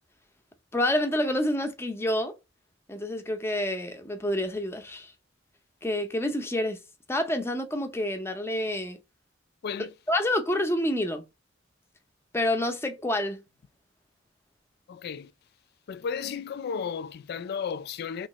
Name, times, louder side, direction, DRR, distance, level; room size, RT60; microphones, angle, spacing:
voice 1, 0.7-2.3 2.9-5.1 5.8-6.8 7.1-9.0 10.1-11.2 12.3-13.4, left 1 dB, 15° left, 0.6 m, -28 dB
voice 2, 14.9-15.3 15.9-18.3, left 6 dB, 55° left, 0.3 m, -34 dB
3.1 x 2.8 x 4.1 m
head